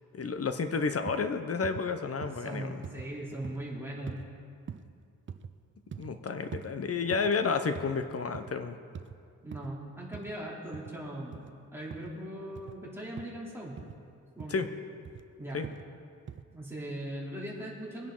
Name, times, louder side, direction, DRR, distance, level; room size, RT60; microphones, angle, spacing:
voice 1, 0.1-2.8 6.0-8.8 14.5-14.7 15.5-15.7, left 5 dB, 45° left, 8 dB, 0.9 m, -31 dB
sound 1, 1.1-1.3 1.6-1.9 2.2-2.4 2.8-3.1 3.4-3.6 4.1-4.3 4.7-4.9 5.3-5.5 5.9-6.1 6.5-6.7 7.1-7.3 7.7-8.0 8.2-8.5 8.9-9.2 9.5-9.7 10.1-10.3 10.7-10.9 11.3-11.5 11.9-12.1 12.5-12.8 13.2-13.4 13.8-14.0 14.4-14.6 15.0-15.2 15.6-15.9 16.3-16.4, right 7 dB, 35° right, 0.5 m, -43 dB
voice 2, 2.2-4.2 9.4-11.4 11.7-13.8 14.3-14.6 15.4-15.6 16.5-18.1, right 1 dB, 5° right, -5 dB, 3.1 m, -39 dB
21.5 x 10.5 x 3.8 m, 2.3 s
cardioid pair, 105°, 33 cm